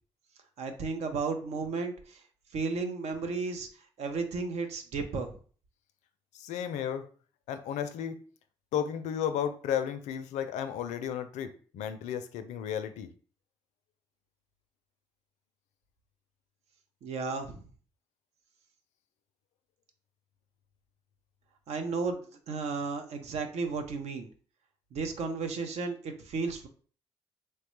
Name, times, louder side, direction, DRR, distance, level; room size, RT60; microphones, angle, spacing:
voice 1, 0.6-2.2 2.5-3.7 4.0-5.4 17.0-17.6 21.7-22.2 22.5-24.3 24.9-26.7, right 4 dB, 65° right, 6 dB, 0.6 m, -33 dB
voice 2, 6.3-7.1 7.5-8.2 8.7-13.1, left 9 dB, 75° left, 9 dB, 0.4 m, -33 dB
3.1 x 2.2 x 3.0 m, 0.42 s
hypercardioid pair, 50°, 12 cm